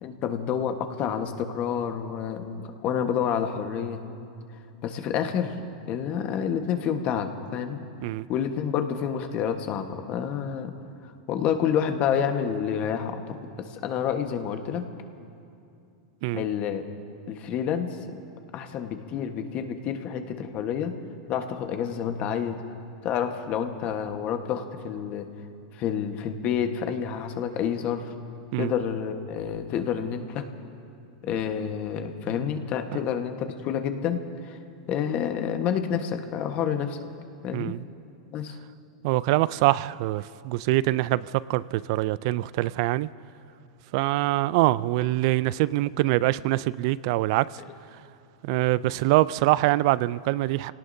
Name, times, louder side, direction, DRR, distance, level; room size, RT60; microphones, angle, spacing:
voice 1, 0.0-4.0 4.8-5.6 5.9-7.8 8.3-10.7 11.3-14.9 16.3-16.8 17.3-18.2 18.5-20.9 21.3-22.6 23.0-25.3 25.7-28.1 28.6-30.4 31.2-34.6 34.9-37.0 37.4-37.7 38.3-38.6, left 8 dB, 45° left, 6 dB, 1.3 m, -29 dB
voice 2, 39.0-43.1 43.9-47.5 48.4-50.7, right 17 dB, 60° right, 19 dB, 0.4 m, -24 dB
28.0 x 18.0 x 2.7 m, 2.6 s
hypercardioid pair, 115°, 3 cm